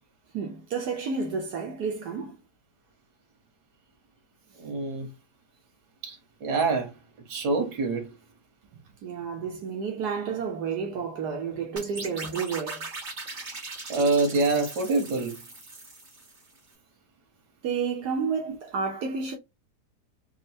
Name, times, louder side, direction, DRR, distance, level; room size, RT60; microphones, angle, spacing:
voice 1, 0.3-2.4 9.0-12.9 17.6-19.4, right 5 dB, 75° right, 1.4 m, -31 dB
voice 2, 4.6-5.1 6.0-6.2 6.4-6.9 7.3-8.1 13.9-15.4, right 3 dB, 90° right, 1.7 m, -25 dB
sound 1, 11.8-16.6, right 3 dB, 30° right, 1.1 m, -39 dB
4.3 x 2.1 x 2.7 m
omnidirectional pair, 1.8 m